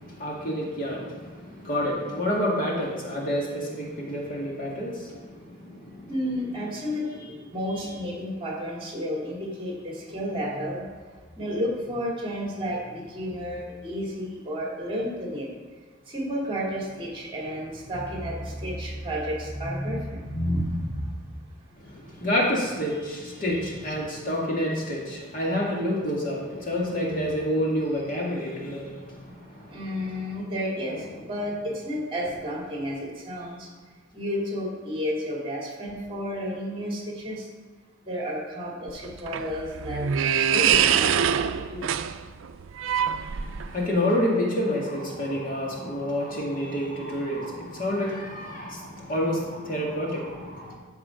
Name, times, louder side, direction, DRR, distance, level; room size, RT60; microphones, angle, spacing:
voice 1, 0.0-6.1 21.8-30.1 43.2-50.7, equal, 45° left, -3 dB, 1.9 m, -29 dB
voice 2, 6.1-10.8 11.3-15.5 16.1-21.0 23.9-24.0 29.7-33.7 34.1-37.5 38.1-40.0 40.4-41.4 41.7-41.9, equal, 25° right, -3 dB, 2.3 m, -31 dB
sound 1, 38.9-43.9, right 8 dB, 75° right, 0.4 m, -24 dB
14.0 x 4.8 x 5.1 m, 1.5 s
head